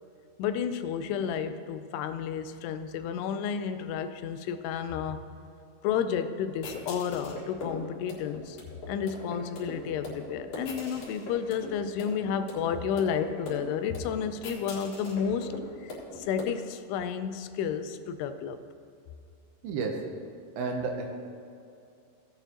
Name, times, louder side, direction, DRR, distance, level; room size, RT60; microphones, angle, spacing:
voice 1, 0.4-5.2 5.8-8.6 8.9-15.5 15.8-18.6, left 7 dB, 85° left, 10 dB, 2.6 m, -31 dB
sound 1, 6.6-16.5, left 2 dB, 60° left, 3.2 m, -41 dB
voice 2, 19.6-20.0 20.6-21.1, right 4 dB, 75° right, 3 dB, 2.5 m, -31 dB
16.5 x 9.0 x 2.9 m, 2.5 s
omnidirectional pair, 4.7 m